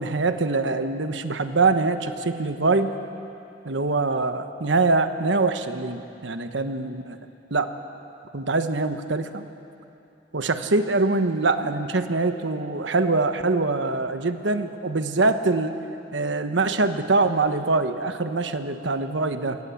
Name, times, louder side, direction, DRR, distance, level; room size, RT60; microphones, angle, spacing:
voice 1, 0.0-2.9 3.6-7.2 7.5-7.7 8.3-9.4 10.3-15.8 16.1-19.6, right 3 dB, 75° right, 9 dB, 1.2 m, -24 dB
26.0 x 19.5 x 7.2 m, 2.8 s
head